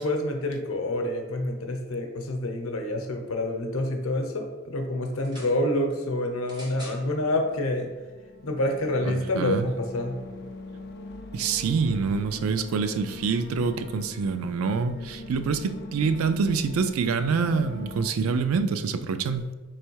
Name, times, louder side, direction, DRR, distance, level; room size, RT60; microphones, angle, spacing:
voice 1, 0.0-7.9 8.4-10.2, left 1 dB, 85° left, 4 dB, 0.7 m, -27 dB
sound 1, 5.1-5.6 6.4-7.0 7.9-8.0, equal, 20° right, 0.8 m, -45 dB
sound 2, 6.3-18.1, left 2 dB, 50° left, 0.4 m, -42 dB
voice 2, 9.0-9.7 11.3-19.5, right 5 dB, 85° right, 10 dB, 0.4 m, -26 dB
3.5 x 3.3 x 4.6 m, 1.3 s
head